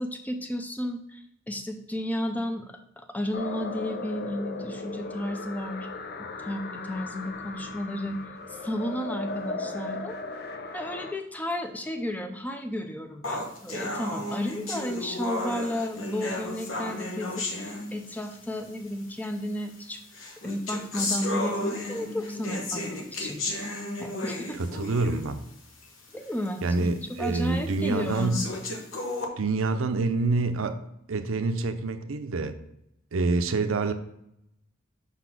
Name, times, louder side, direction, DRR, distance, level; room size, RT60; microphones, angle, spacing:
voice 1, 0.0-2.7 3.0-5.9 6.4-8.2 8.5-10.2 10.7-20.0 20.4-23.4 24.0-24.6 26.1-26.9 27.2-28.5, left 1 dB, 10° left, 0.6 m, -33 dB
sound 1, 3.3-11.1, left 3 dB, 50° left, 0.6 m, -37 dB
sound 2, 13.2-18.4 19.2-19.3 20.1-25.4 25.8-25.9 26.4-26.5 27.2-27.3 28.1-29.2, left 2 dB, 85° left, 1.1 m, -33 dB
voice 2, 24.6-25.4 26.6-28.4 29.4-30.8 31.1-32.6 33.1-33.9, right 3 dB, 90° right, 0.6 m, -27 dB
5.8 x 4.0 x 5.9 m
head